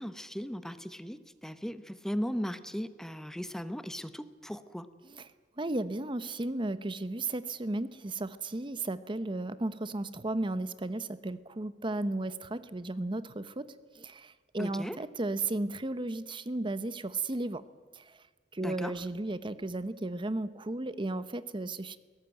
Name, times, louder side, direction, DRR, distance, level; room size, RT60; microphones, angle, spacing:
voice 1, 0.0-4.9 14.6-15.0 18.6-19.0, equal, 5° left, 12 dB, 0.8 m, -37 dB
voice 2, 5.6-13.7 13.9-17.6 18.0-18.1 18.5-22.0, right 2 dB, 30° right, 14 dB, 0.8 m, -34 dB
22.0 x 18.0 x 9.1 m, 1.4 s
head